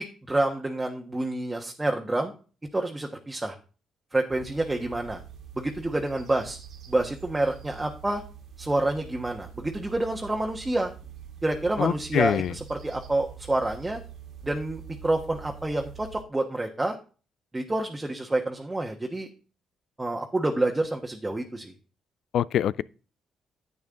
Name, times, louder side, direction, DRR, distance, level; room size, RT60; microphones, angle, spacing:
voice 1, 0.3-2.3 2.7-3.5 4.1-5.2 5.6-6.6 6.9-8.2 8.6-10.9 11.4-14.0 14.4-16.9 17.5-19.3 20.0-21.7, right 2 dB, 15° right, 1.3 m, -28 dB
sound 1, 4.3-16.2, right 8 dB, 70° right, 2.1 m, -45 dB
voice 2, 11.8-12.5 22.3-22.8, left 10 dB, 70° left, 0.4 m, -24 dB
10.5 x 8.5 x 3.7 m
cardioid pair, 90°, 0 cm